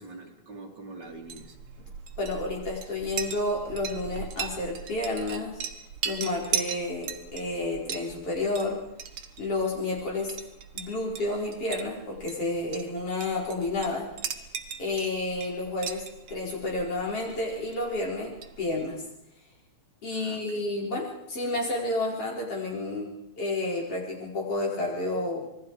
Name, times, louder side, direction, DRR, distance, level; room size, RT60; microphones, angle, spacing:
voice 1, 0.0-1.6 20.2-20.7, right 2 dB, 35° right, 0 dB, 3.4 m, -44 dB
Chink clink, 1.1-18.9, right 7 dB, 55° right, 2.2 m, -39 dB
voice 2, 2.2-5.6 6.0-8.8 9.4-10.3 10.7-14.1 14.8-19.0 20.0-23.1 23.4-25.5, left 2 dB, 50° left, -3 dB, 5.7 m, -30 dB
27.0 x 21.0 x 4.9 m, 0.81 s
omnidirectional pair, 3.4 m